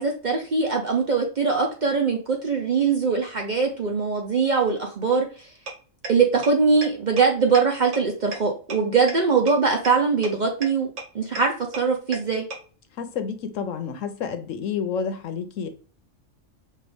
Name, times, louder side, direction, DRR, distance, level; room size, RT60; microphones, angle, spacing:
voice 1, 0.0-5.2 6.1-12.4, right 5 dB, 50° right, 0.6 m, -22 dB
sound 1, 5.7-5.8 6.0-6.1 6.4-6.5 6.8-6.9 7.2-7.3 7.5-7.6 7.9-8.0 8.3-8.4 8.7-8.8 9.1-9.2 9.5-9.6 9.8-9.9 10.2-10.3 10.6-10.7 11.0-11.1 11.3-11.4 11.7-11.8 12.1-12.2 12.5-12.6, right 4 dB, 65° right, 1.4 m, -31 dB
voice 2, 13.0-15.7, left 6 dB, 75° left, 1.0 m, -29 dB
5.5 x 2.5 x 3.4 m
omnidirectional pair, 1.4 m